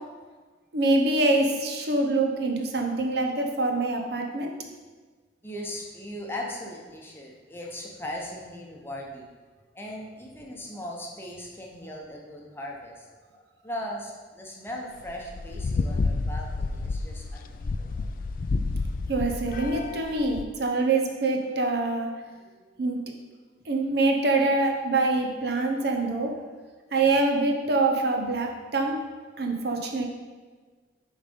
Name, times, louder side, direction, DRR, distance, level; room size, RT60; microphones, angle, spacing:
voice 1, 0.7-4.5 19.1-22.1 22.8-23.0 23.7-26.3 26.9-29.0 29.4-30.1, right 2 dB, 60° right, 3 dB, 0.8 m, -25 dB
voice 2, 5.4-9.3 9.7-18.0, left 1 dB, 15° left, -2 dB, 0.9 m, -38 dB
sound 1, 15.0-20.5, left 3 dB, 50° left, 0.3 m, -30 dB
7.0 x 4.1 x 5.3 m, 1.4 s
head